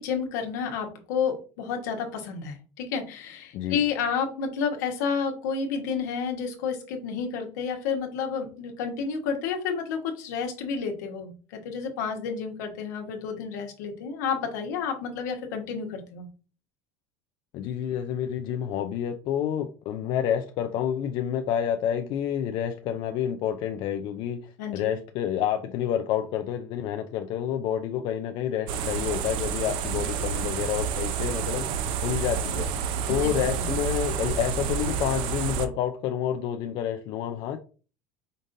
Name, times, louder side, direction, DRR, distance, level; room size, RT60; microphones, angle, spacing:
voice 1, 0.0-16.3 24.6-24.9 33.1-33.3 33.6-33.7, left 6 dB, 85° left, 1.2 m, -30 dB
voice 2, 17.5-32.7 33.1-37.6, left 9 dB, 60° left, 0.5 m, -29 dB
sound 1, 28.7-35.7, right 7 dB, 65° right, 0.6 m, -29 dB
5.2 x 3.8 x 2.6 m
supercardioid pair, 110°, 9 cm